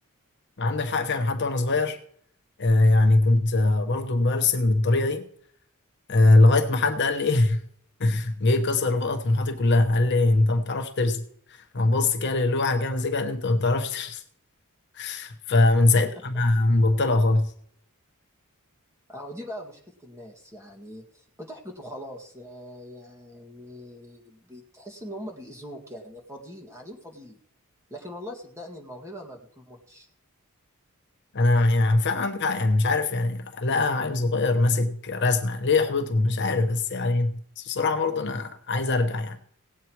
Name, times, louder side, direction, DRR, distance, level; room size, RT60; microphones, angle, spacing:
voice 1, 0.6-2.0 2.6-5.3 6.1-7.7 8.0-11.2 11.5-14.2 14.9-17.5 31.3-39.4, left 2 dB, 50° left, 1.0 m, -22 dB
voice 2, 19.1-27.4 27.9-30.1, equal, 15° right, 2.0 m, -41 dB
17.5 x 8.2 x 4.6 m
head